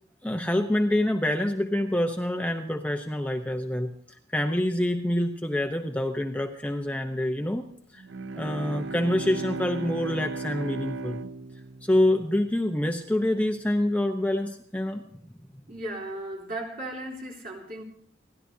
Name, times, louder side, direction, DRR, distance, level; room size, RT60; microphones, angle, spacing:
voice 1, 0.2-3.9 4.3-7.7 7.9-8.0 8.3-11.2 11.8-15.0, left 1 dB, 5° left, 4 dB, 0.8 m, -26 dB
Bowed string instrument, 8.0-12.8, right 3 dB, 80° right, 0.6 m, -36 dB
voice 2, 15.7-17.8, right 1 dB, 45° right, -1 dB, 3.5 m, -36 dB
29.5 x 11.5 x 2.8 m, 0.65 s
head